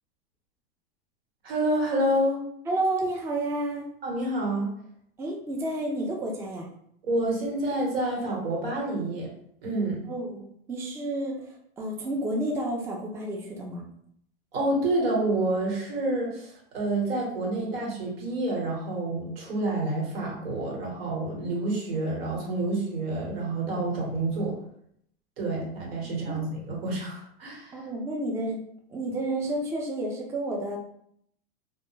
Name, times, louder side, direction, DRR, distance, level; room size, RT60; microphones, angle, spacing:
voice 1, 1.4-2.4 4.0-4.7 7.0-9.3 9.6-10.0 14.5-24.5 25.4-27.8, right 2 dB, 80° right, -2 dB, 1.3 m, -28 dB
voice 2, 2.7-3.9 5.2-6.7 10.1-13.8 27.7-28.6 28.9-30.8, right 1 dB, 10° right, 0 dB, 0.4 m, -30 dB
2.2 x 2.0 x 3.1 m, 0.69 s
hypercardioid pair, 110°, 29 cm